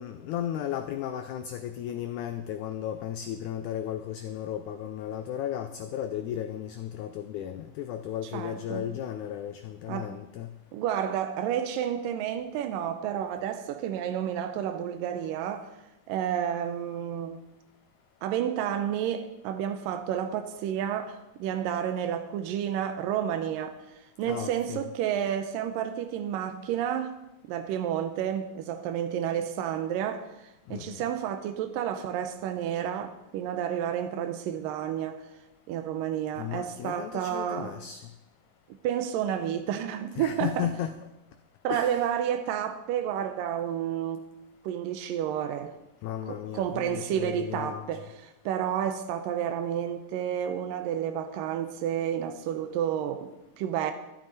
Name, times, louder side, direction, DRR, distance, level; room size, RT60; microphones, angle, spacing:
voice 1, 0.0-10.5 24.2-24.9 30.7-31.1 36.4-38.0 40.2-41.0 41.7-42.0 46.0-48.1, left 10 dB, 80° left, 1.8 m, -35 dB
voice 2, 8.3-8.8 9.9-10.1 10.7-15.7 16.1-17.4 18.2-23.8 24.2-27.2 27.5-35.3 35.7-37.7 38.7-40.7 41.6-44.3 44.6-45.7 46.3-53.3 53.6-53.9, right 9 dB, 80° right, 2.4 m, -30 dB
14.0 x 12.5 x 4.2 m
omnidirectional pair, 4.0 m